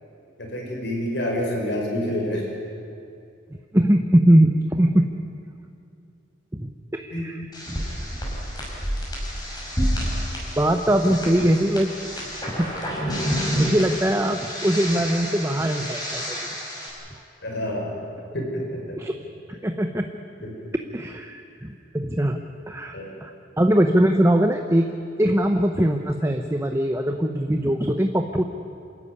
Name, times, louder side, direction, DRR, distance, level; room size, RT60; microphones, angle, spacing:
voice 1, 0.4-2.5 7.1-7.4 12.5-12.6 17.4-18.0 18.3-19.0 20.4-20.7 22.9-23.1, left 1 dB, 60° left, 0 dB, 5.9 m, -28 dB
voice 2, 3.7-5.1 6.5-7.4 7.7-7.8 10.6-11.9 12.3-12.8 13.5-16.4 19.0-19.2 19.6-20.1 20.9-22.4 22.7-23.3 23.6-24.9 25.2-28.4, right 1 dB, 15° right, 4 dB, 0.8 m, -21 dB
sound 1, 7.5-16.9, equal, 20° left, 5.8 m, -29 dB
26.5 x 14.0 x 9.8 m, 2.5 s
head